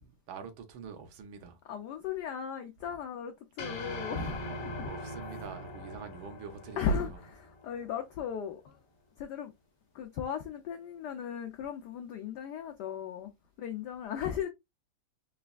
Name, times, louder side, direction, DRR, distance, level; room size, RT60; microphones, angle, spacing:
voice 1, 0.0-1.6 4.9-7.2, right 6 dB, 70° right, 1.5 m, -45 dB
voice 2, 1.7-4.9 6.8-8.8 9.2-9.5 9.9-13.3 13.6-14.5, left 6 dB, 85° left, 0.9 m, -36 dB
sound 1, 3.6-8.0, left 1 dB, 55° left, 1.0 m, -41 dB
4.2 x 3.3 x 2.2 m
omnidirectional pair, 2.4 m